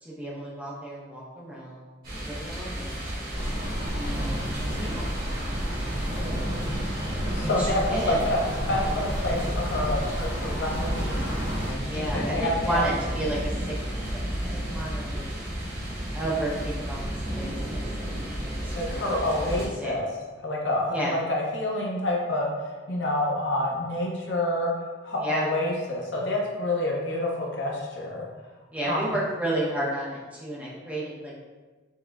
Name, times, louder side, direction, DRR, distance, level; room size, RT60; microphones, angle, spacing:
voice 1, 0.0-1.9 2.2-3.4 3.9-4.5 4.8-5.0 7.4-8.2 11.8-13.7 14.1-15.3 16.1-17.0 17.3-19.9 20.9-21.2 25.2-25.5 28.7-31.4, right 1 dB, 5° right, -6 dB, 0.6 m, -32 dB
sound 1, 2.0-19.7, equal, 50° right, 1.3 m, -33 dB
sound 2, 3.3-11.7, equal, 70° right, 1.1 m, -31 dB
voice 2, 7.3-8.4 8.7-11.3 11.7-12.9 18.7-20.1 20.4-24.7 25.0-28.3 28.8-29.1, left 1 dB, 65° left, -2 dB, 0.7 m, -28 dB
5.5 x 2.0 x 2.3 m, 1.3 s
head